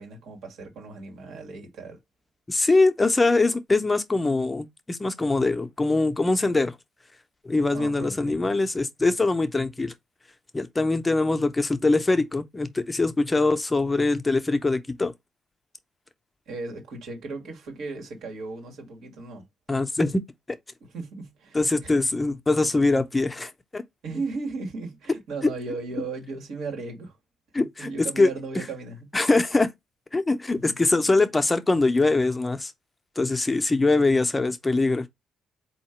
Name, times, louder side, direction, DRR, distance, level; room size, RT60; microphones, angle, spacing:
voice 1, 0.0-2.0 7.7-8.4 16.4-19.4 20.9-22.2 24.0-27.2 27.6-29.1 30.5-30.7, right 3 dB, 80° right, 1.8 m, -36 dB
voice 2, 2.5-6.8 7.4-9.9 10.5-15.1 19.7-20.2 20.5-20.6 21.5-23.8 27.5-27.9 28.2-28.6 29.1-29.7 30.1-32.7 33.2-35.1, left 3 dB, 20° left, 0.7 m, -23 dB
3.8 x 2.8 x 4.3 m
cardioid pair, 90°, 0 cm